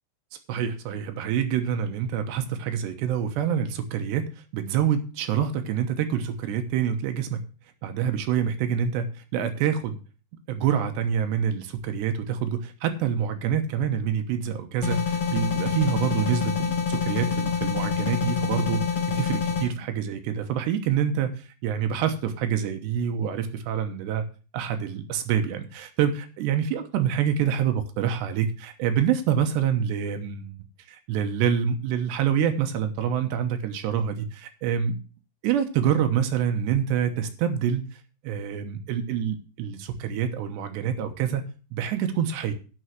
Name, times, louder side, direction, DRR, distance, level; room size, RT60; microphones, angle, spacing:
voice 1, 0.5-7.4 7.8-9.1 9.3-10.0 10.5-18.8 19.1-24.2 24.5-30.6 30.9-35.0 35.4-37.8 38.2-42.5, right 8 dB, 85° right, 7 dB, 3.2 m, -26 dB
sound 1, 14.8-19.7, left 6 dB, 40° left, 3.7 m, -26 dB
11.0 x 6.2 x 6.3 m, 0.35 s
omnidirectional pair, 5.0 m